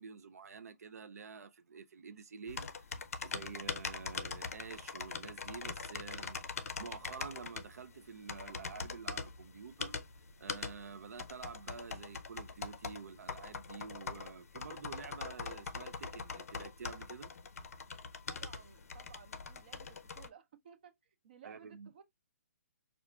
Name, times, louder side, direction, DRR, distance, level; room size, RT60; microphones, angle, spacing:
voice 1, 0.0-2.9 3.2-10.0 10.4-17.3 21.4-21.9, right 5 dB, 90° right, 0.4 m, -49 dB
sound 1, 2.5-20.3, left 5 dB, 75° left, 0.5 m, -43 dB
voice 2, 18.3-19.9 20.1-22.0, right 8 dB, 40° right, 0.6 m, -57 dB
4.6 x 2.4 x 2.3 m
hypercardioid pair, 175°, 8 cm